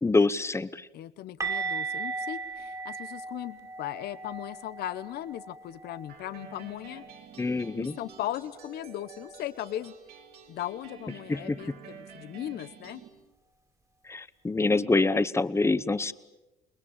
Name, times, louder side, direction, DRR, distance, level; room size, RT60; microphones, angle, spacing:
voice 1, 0.0-0.9 7.4-7.9 11.3-11.6 14.1-16.1, left 3 dB, 15° left, 15 dB, 1.0 m, -26 dB
voice 2, 0.9-7.0 7.8-9.9 10.5-13.0, left 13 dB, 70° left, 14 dB, 1.0 m, -37 dB
sound 1, 1.4-7.2 7.4-7.7 8.0-8.2 11.4-11.5, right 4 dB, 20° right, 2.7 m, -37 dB
sound 2, 6.1-13.1, right 7 dB, 70° right, 4.0 m, -49 dB
29.0 x 21.0 x 8.8 m, 0.98 s
cardioid pair, 110°, 17 cm